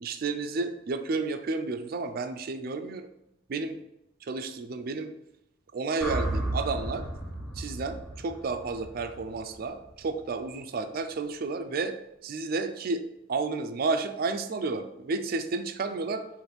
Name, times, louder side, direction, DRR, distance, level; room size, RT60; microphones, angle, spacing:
voice 1, 0.0-3.1 3.5-3.8 4.2-5.1 5.7-7.1 7.6-12.0 12.2-16.3, right 3 dB, 50° right, 8 dB, 0.4 m, -31 dB
sound 1, 6.0-10.2, right 1 dB, 5° left, 0.8 m, -34 dB
5.1 x 2.5 x 4.1 m, 0.84 s
head